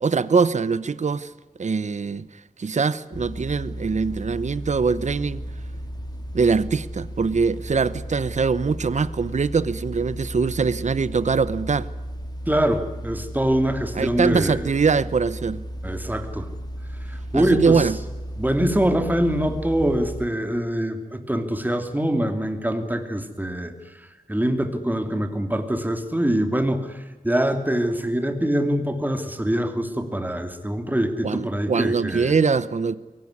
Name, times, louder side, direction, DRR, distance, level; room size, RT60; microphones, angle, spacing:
voice 1, 0.0-1.3 1.6-2.3 2.6-5.4 6.3-11.9 14.0-15.6 17.3-18.0 31.2-32.9, right 5 dB, 55° right, 0.9 m, -22 dB
sound 1, 3.1-20.3, equal, 30° left, 2.9 m, -34 dB
voice 2, 12.5-14.7 15.8-16.5 17.0-17.9 18.4-32.3, right 1 dB, 10° right, 2.8 m, -24 dB
23.0 x 18.5 x 9.7 m
wide cardioid pair, 95°, 14 cm